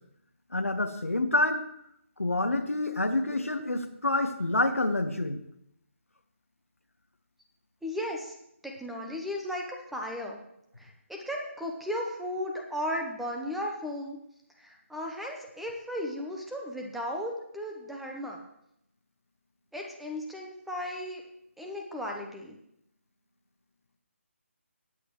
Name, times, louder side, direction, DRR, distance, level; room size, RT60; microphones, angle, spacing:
voice 1, 0.5-1.6 2.2-5.4 12.9-13.0, left 2 dB, 90° left, 7 dB, 1.3 m, -27 dB
voice 2, 7.8-8.3 8.6-10.4 10.8-14.2 14.6-18.4 19.7-21.2 21.6-22.5, left 1 dB, ahead, 0 dB, 0.9 m, -35 dB
18.5 x 7.9 x 3.1 m, 0.77 s
figure-of-eight pair, 155°, 7 cm